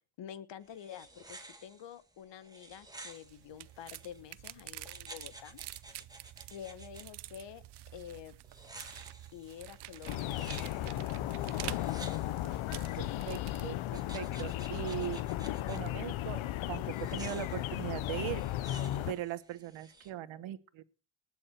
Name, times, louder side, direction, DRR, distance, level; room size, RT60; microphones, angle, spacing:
voice 1, 0.2-5.6 6.5-7.6 7.9-8.3 9.3-10.9 11.3-11.4, left 9 dB, 65° left, 15 dB, 1.4 m, -48 dB
sound 1, 0.6-4.2 4.8-7.0 8.4-13.2 13.9-15.8 16.9-20.1, right 2 dB, 10° right, 2.2 m, -53 dB
sound 2, 3.0-13.8, right 15 dB, 55° right, 0.6 m, -48 dB
sound 3, 10.1-19.1, left 14 dB, 80° left, 0.8 m, -35 dB
voice 2, 13.0-15.2 15.7-18.4 19.1-20.8, right 13 dB, 75° right, 15 dB, 1.2 m, -40 dB
19.5 x 7.2 x 4.4 m, 0.34 s
cardioid pair, 95°, 47 cm